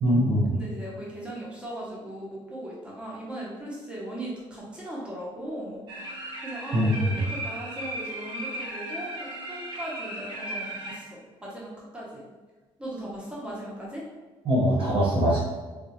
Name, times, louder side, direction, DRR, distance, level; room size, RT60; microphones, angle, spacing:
voice 1, 0.0-0.5 6.7-7.2 14.4-15.4, equal, 70° right, -6 dB, 1.1 m, -22 dB
voice 2, 0.5-6.0 6.4-12.2 12.8-14.0, right 1 dB, 10° right, -5 dB, 0.9 m, -38 dB
sound 1, 5.9-11.0, right 1 dB, 50° right, 0.7 m, -36 dB
3.7 x 2.4 x 2.9 m, 1.3 s
cardioid pair, 160°, 10 cm